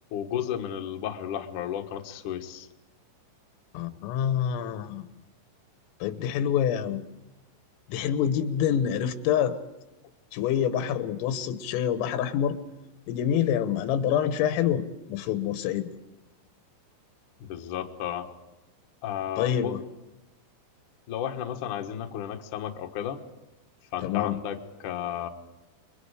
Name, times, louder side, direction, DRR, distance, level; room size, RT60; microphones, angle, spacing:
voice 1, 0.1-2.7 17.4-18.3 19.0-19.8 21.1-23.2 23.9-25.3, left 10 dB, 65° left, 4 dB, 2.0 m, -33 dB
voice 2, 3.7-5.0 6.0-7.0 7.9-9.6 10.3-12.6 13.1-15.9 19.4-19.8 24.0-24.4, left 9 dB, 90° left, 11 dB, 3.8 m, -26 dB
30.0 x 22.5 x 4.9 m, 1.0 s
omnidirectional pair, 5.8 m